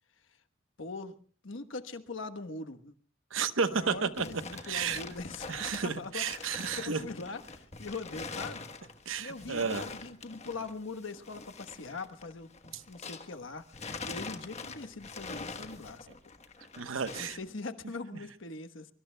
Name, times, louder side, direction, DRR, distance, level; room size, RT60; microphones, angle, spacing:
voice 1, 0.8-1.2 1.4-2.9 3.7-5.6 6.0-8.7 9.2-12.5 12.9-16.1 17.2-18.9, left 3 dB, 75° left, 9 dB, 1.2 m, -42 dB
voice 2, 3.3-4.3 4.6-5.0 5.5-7.1 9.1-9.8 12.7-12.8 16.8-17.4, right 5 dB, 85° right, 11 dB, 1.0 m, -32 dB
sound 1, 3.8-13.4 13.7-17.4, left 4 dB, 35° left, 1.3 m, -44 dB
24.0 x 24.0 x 2.3 m, 0.41 s
head